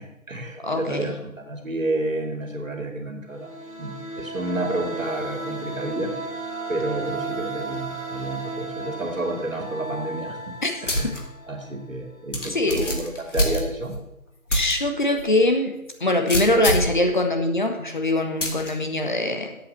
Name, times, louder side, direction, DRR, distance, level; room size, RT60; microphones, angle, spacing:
voice 1, 0.0-3.5 3.8-6.1 6.7-10.4 10.8-13.9, right 2 dB, 65° right, 4 dB, 2.4 m, -30 dB
voice 2, 0.6-1.1 10.6-10.7 12.5-12.8 14.5-15.7 16.0-19.6, left 1 dB, 35° left, 4 dB, 1.4 m, -22 dB
sound 1, 3.3-11.9, right 3 dB, 70° left, 5.4 m, -34 dB
sound 2, 10.9-11.2 11.6-11.7 12.3-14.0 14.5-14.7 15.2-15.3 16.3-17.0 18.4-18.7, equal, 55° left, 2.9 m, -25 dB
10.5 x 8.4 x 6.8 m, 0.94 s
figure-of-eight pair, 170°, 43 cm